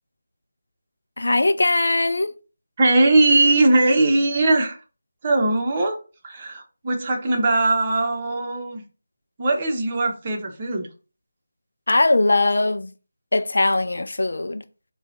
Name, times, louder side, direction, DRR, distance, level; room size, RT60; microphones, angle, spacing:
voice 1, 1.2-2.3 11.9-12.9 13.3-14.6, left 2 dB, 70° left, 0.3 m, -20 dB
voice 2, 2.8-4.8 5.2-6.0 6.2-8.8 9.4-10.9, right 2 dB, 30° right, 0.9 m, -20 dB
3.9 x 2.3 x 4.2 m
figure-of-eight pair, 160°, 0 cm